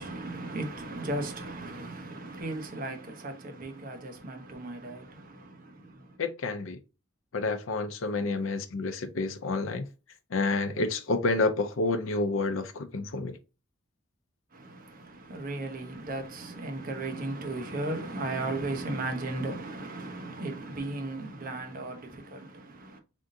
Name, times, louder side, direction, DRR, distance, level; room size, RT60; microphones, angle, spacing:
voice 1, 0.0-6.2 14.5-23.0, right 2 dB, 45° right, 0.9 m, -36 dB
voice 2, 6.2-6.8 7.3-9.9 10.3-13.3, left 3 dB, 75° left, 0.5 m, -29 dB
3.8 x 3.5 x 2.6 m
head